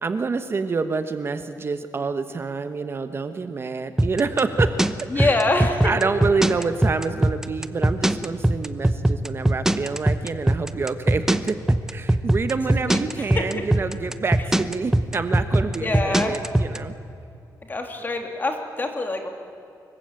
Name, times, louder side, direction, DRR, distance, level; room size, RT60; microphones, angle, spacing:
voice 1, 0.0-4.8 5.1-5.4 5.8-11.6 11.9-16.9, right 4 dB, 35° right, 9 dB, 1.1 m, -27 dB
sound 1, 4.0-16.8, right 1 dB, 5° right, 0.8 m, -20 dB
voice 2, 5.1-5.9 12.9-13.0 13.3-13.4 15.8-16.3 17.7-19.3, left 2 dB, 25° left, 4 dB, 3.1 m, -24 dB
25.5 x 22.5 x 9.0 m, 2.6 s
wide cardioid pair, 140°, 7 cm